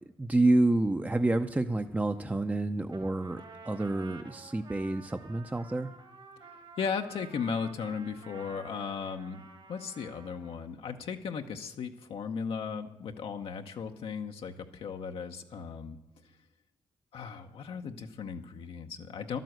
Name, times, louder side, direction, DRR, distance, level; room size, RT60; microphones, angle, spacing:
voice 1, 0.2-5.9, right 2 dB, 15° right, 7 dB, 0.6 m, -28 dB
Trumpet, 2.9-10.7, right 4 dB, 60° right, 2.7 m, -51 dB
voice 2, 6.8-9.4 9.7-16.0 17.1-19.4, left 6 dB, 75° left, 4 dB, 0.8 m, -36 dB
11.5 x 9.2 x 7.9 m, 0.86 s
cardioid pair, 60°, 10 cm